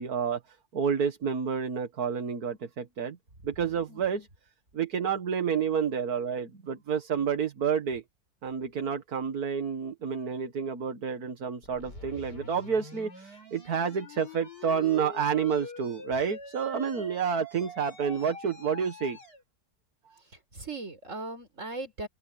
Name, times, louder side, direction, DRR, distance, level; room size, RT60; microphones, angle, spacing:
voice 1, 0.0-3.2 3.4-4.3 4.7-8.0 8.4-19.2, right 6 dB, 65° right, 2.1 m, -29 dB
voice 2, 3.9-4.3 20.5-22.1, right 2 dB, 45° right, 5.6 m, -38 dB
sound 1, 11.6-19.4, left 3 dB, 85° left, 5.1 m, -45 dB
open air
omnidirectional pair, 1.8 m